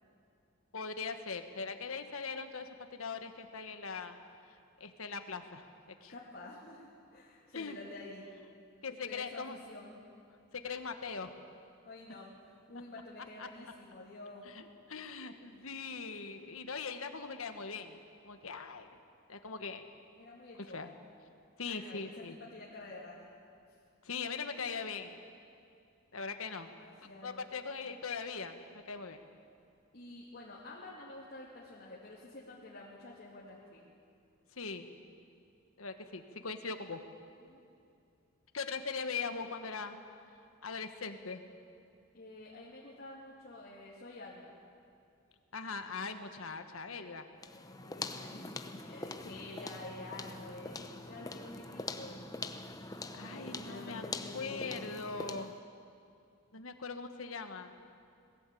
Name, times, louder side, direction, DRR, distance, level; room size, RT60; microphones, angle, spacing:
voice 1, 0.7-4.2 4.8-5.6 6.0-6.1 7.5-7.8 8.8-9.6 10.5-11.3 13.4-13.5 14.4-18.9 19.3-19.8 20.7-20.9 21.6-22.4 24.0-25.2 26.1-26.7 27.2-28.6 28.9-29.2 34.5-34.9 35.8-37.0 38.5-40.0 40.6-41.4 45.5-47.3 53.1-54.0 54.3-55.5 56.5-57.7, left 5 dB, 75° left, 7 dB, 1.5 m, -40 dB
voice 2, 6.1-8.3 9.0-10.0 11.8-14.5 14.9-15.2 20.2-21.1 21.7-22.2 22.5-23.3 26.7-27.5 29.9-33.9 37.4-37.7 42.1-44.6 47.8-52.3 53.3-54.9, left 2 dB, 50° left, -5 dB, 2.7 m, -49 dB
sound 1, 47.4-55.6, left 3 dB, 15° left, 0.8 m, -43 dB
21.5 x 15.5 x 8.5 m, 2.5 s
head